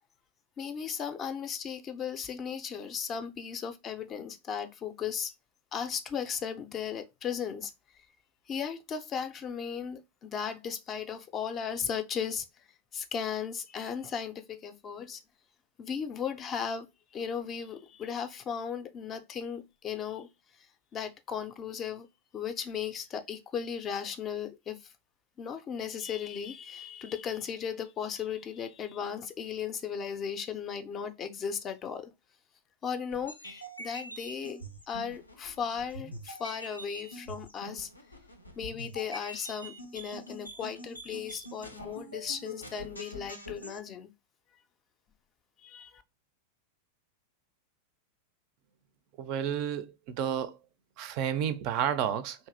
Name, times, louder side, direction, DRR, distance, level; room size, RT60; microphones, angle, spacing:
voice 1, 0.6-5.3 5.7-7.7 8.5-12.5 12.9-15.2 15.8-16.9 17.1-20.3 20.9-22.1 22.3-24.9 25.4-32.1 32.8-37.9 38.6-44.1 45.6-46.0, left 7 dB, 30° left, 0.4 m, -36 dB
sound 1, 33.1-43.8, equal, 85° left, 0.5 m, -45 dB
voice 2, 49.2-50.6 51.0-52.5, right 9 dB, 45° right, 0.3 m, -31 dB
2.8 x 2.6 x 2.5 m
figure-of-eight pair, 90°, 0 cm